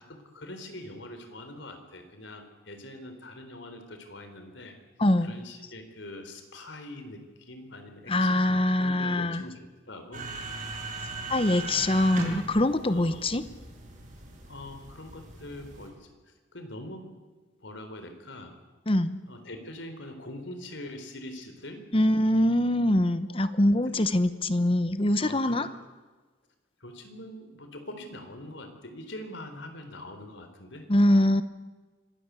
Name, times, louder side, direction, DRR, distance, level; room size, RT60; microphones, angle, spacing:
voice 1, 0.0-4.8 5.2-9.5 9.9-10.3 12.8-13.2 14.5-17.1 17.6-18.5 19.3-21.8 23.9-24.0 25.2-25.7 26.8-30.9, left 1 dB, 70° left, 7 dB, 4.0 m, -43 dB
voice 2, 5.0-5.3 8.1-9.4 11.3-13.4 18.9-19.2 21.9-25.7 30.9-31.4, left 1 dB, 30° left, 13 dB, 0.9 m, -23 dB
sound 1, 10.1-15.9, right 2 dB, 40° right, 6.5 m, -38 dB
26.0 x 18.0 x 8.3 m, 1.3 s
head